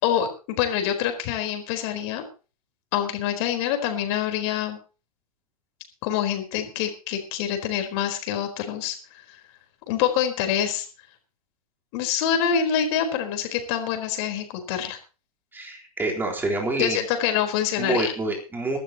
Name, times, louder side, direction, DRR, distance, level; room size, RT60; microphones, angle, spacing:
voice 1, 0.0-2.2 2.9-4.8 6.0-9.0 9.3-9.4 9.9-10.9 11.9-15.0 16.8-18.1, left 9 dB, 45° left, 6 dB, 4.3 m, -26 dB
voice 2, 15.5-17.0 17.8-18.8, right 2 dB, 10° right, 0 dB, 3.9 m, -27 dB
22.0 x 12.5 x 3.0 m, 0.34 s
hypercardioid pair, 140°, 19 cm